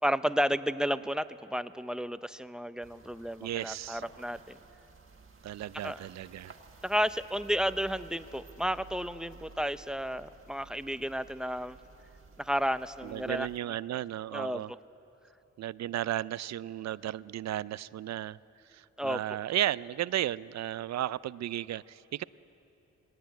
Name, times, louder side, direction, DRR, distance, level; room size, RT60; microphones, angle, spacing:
voice 1, 0.0-4.6 5.8-6.1 6.8-11.8 12.4-13.5 14.3-14.6 19.0-19.4, equal, ahead, 13 dB, 0.6 m, -32 dB
sound 1, 2.8-13.6, right 4 dB, 45° right, 1.7 m, -54 dB
voice 2, 3.4-4.0 5.4-6.5 13.0-14.7 15.6-18.4 18.7-22.2, right 12 dB, 65° right, 19 dB, 0.4 m, -34 dB
19.5 x 17.0 x 9.2 m, 3.0 s
cardioid pair, 70°, 30 cm